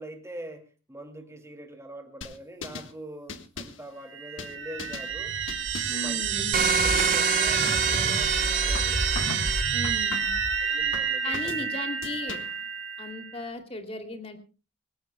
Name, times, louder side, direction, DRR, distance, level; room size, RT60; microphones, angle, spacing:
voice 1, 0.0-5.3 5.9-6.4 6.8-9.0 10.6-11.7, right 1 dB, 15° right, 4 dB, 2.3 m, -43 dB
sound 1, 2.2-2.9 3.3-3.8 4.4-5.1 5.5-6.1 6.6-6.7 7.0-7.3 7.7-8.2 8.7-9.5 9.8-10.4 10.9-11.6 12.0-12.6, left 4 dB, 75° left, 1.6 m, -39 dB
sound 2, 4.1-13.4, right 6 dB, 75° right, 2.3 m, -28 dB
voice 2, 5.9-6.7 9.7-10.3 11.2-12.4 13.0-14.4, left 1 dB, 30° left, 5 dB, 2.7 m, -36 dB
sound 3, 6.5-9.6, right 3 dB, 50° right, 1.4 m, -27 dB
25.0 x 18.5 x 2.2 m, 0.33 s
head